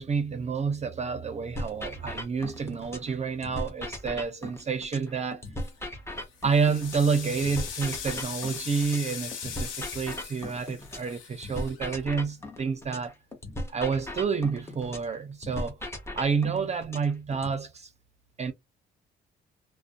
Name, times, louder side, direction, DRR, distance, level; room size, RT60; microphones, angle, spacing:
voice 1, 0.0-5.4 6.4-13.1 13.7-15.8 16.2-17.9 18.4-18.5, right 5 dB, 35° right, 0.5 m, -29 dB
sound 1, 1.5-3.1 3.4-7.1 7.4-11.1 11.4-15.1 15.4-17.5, left 1 dB, 15° left, 0.8 m, -37 dB
sound 2, 5.5-5.9 6.3-12.6, left 7 dB, 80° left, 0.8 m, -40 dB
2.4 x 2.1 x 2.5 m
cardioid pair, 90°, 20 cm